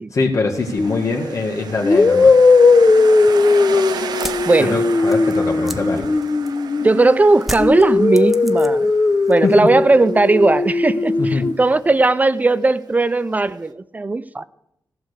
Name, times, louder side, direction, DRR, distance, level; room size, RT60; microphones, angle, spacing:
voice 1, 0.1-2.4 4.6-6.1 9.4-9.6 11.2-11.5, left 3 dB, 50° left, 1.8 m, -22 dB
sound 1, 0.6-13.7, right 7 dB, 85° right, 0.8 m, -34 dB
sound 2, 0.8-1.0 1.8-7.2 7.6-11.5, left 3 dB, 30° left, 0.8 m, -17 dB
sound 3, 4.2-6.8 7.4-9.0 9.2-9.8, equal, ahead, 0.9 m, -33 dB
voice 2, 4.4-4.7 6.8-8.9 9.3-14.4, right 2 dB, 25° right, 0.5 m, -17 dB
15.0 x 6.8 x 8.1 m
wide cardioid pair, 115°, 7 cm